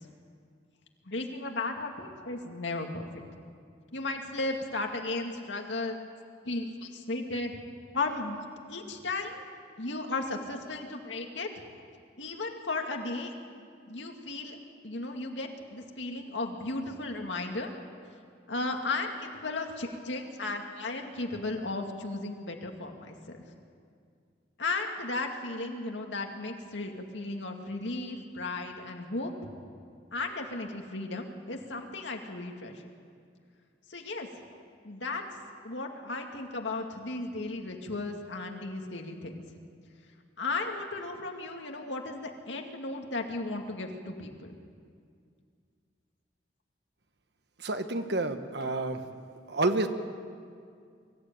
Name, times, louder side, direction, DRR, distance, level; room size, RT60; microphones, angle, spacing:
voice 1, 1.1-3.2 3.9-6.0 6.5-7.5 7.9-8.4 8.7-9.4 9.8-11.5 12.2-13.3 13.9-14.6 14.8-17.7 18.5-23.4 24.6-29.3 30.1-32.9 33.9-34.3 34.8-35.2 35.6-39.4 40.4-44.6, left 2 dB, 80° left, 3 dB, 2.3 m, -35 dB
voice 2, 47.6-49.0 49.5-49.9, right 2 dB, 65° right, 8 dB, 1.3 m, -29 dB
24.0 x 15.0 x 9.0 m, 2.2 s
head